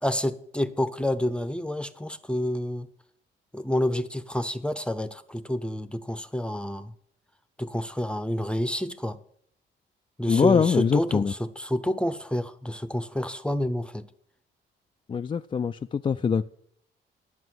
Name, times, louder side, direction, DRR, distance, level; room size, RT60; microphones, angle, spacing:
voice 1, 0.0-2.9 3.5-6.9 7.6-9.2 10.2-14.1, left 1 dB, 5° left, 0.7 m, -28 dB
voice 2, 10.3-11.3 15.1-16.4, left 6 dB, 25° left, 0.3 m, -23 dB
9.6 x 8.0 x 7.7 m
cardioid pair, 90°, 20 cm